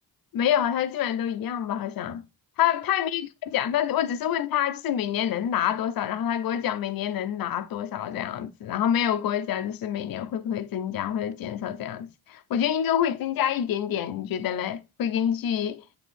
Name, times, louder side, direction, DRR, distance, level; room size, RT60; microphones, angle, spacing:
voice 1, 0.3-2.2 2.6-15.8, left 10 dB, 75° left, 0.8 m, -27 dB
8.9 x 3.8 x 4.2 m
cardioid pair, 85°, 35 cm